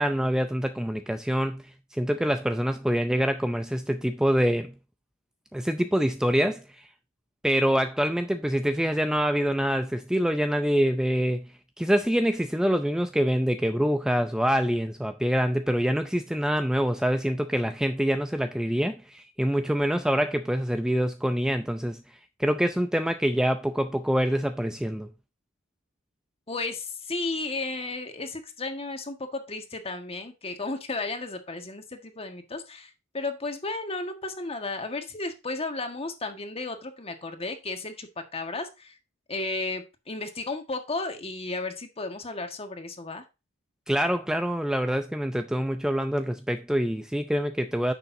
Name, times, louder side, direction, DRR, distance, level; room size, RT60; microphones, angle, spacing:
voice 1, 0.0-1.6 1.9-4.7 5.5-6.8 7.4-11.4 11.8-22.0 22.4-25.1 43.9-47.9, equal, 5° right, 0.5 m, -25 dB
voice 2, 26.5-38.9 39.3-43.2, left 3 dB, 30° left, 1.6 m, -34 dB
9.9 x 6.7 x 2.7 m
head